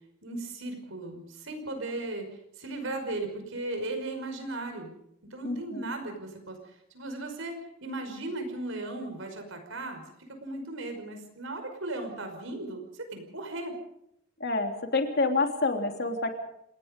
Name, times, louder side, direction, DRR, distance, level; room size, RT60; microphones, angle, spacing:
voice 1, 0.2-2.3 2.6-4.9 5.3-6.6 6.9-10.0 10.4-13.7, right 2 dB, 65° right, 5 dB, 5.5 m, -36 dB
voice 2, 5.4-5.9 14.4-16.3, left 3 dB, 50° left, 4 dB, 3.2 m, -28 dB
29.0 x 19.0 x 5.3 m, 0.77 s
head